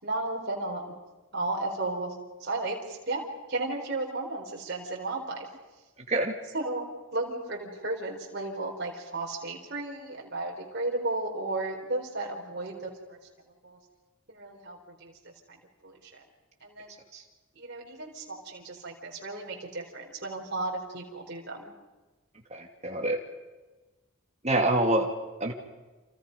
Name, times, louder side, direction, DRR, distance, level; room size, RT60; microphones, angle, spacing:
voice 1, 0.0-0.9 1.3-5.5 6.5-13.2 13.6-13.8 14.3-15.1 15.5-15.6 15.8-16.0 16.6-17.0 17.6-21.7, right 2 dB, 50° right, -1 dB, 4.3 m, -34 dB
voice 2, 6.1-6.4 17.1-17.2 22.5-23.2 24.4-25.1 25.4-25.5, right 1 dB, 30° right, 2 dB, 2.8 m, -26 dB
29.0 x 28.0 x 5.4 m, 1.2 s
head